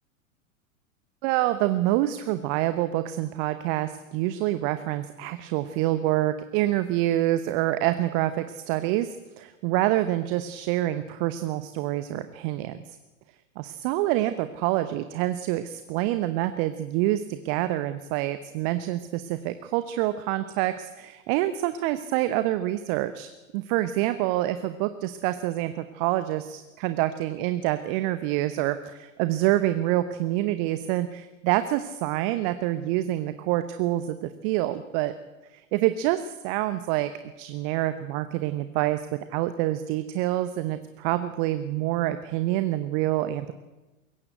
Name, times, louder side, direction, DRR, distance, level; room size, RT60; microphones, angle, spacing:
voice 1, 1.2-12.8 13.6-35.1 35.7-37.1 37.4-39.0 39.3-43.5, right 15 dB, 35° right, 12 dB, 1.0 m, -27 dB
21.5 x 18.0 x 8.1 m, 1.1 s
figure-of-eight pair, 95°, 42 cm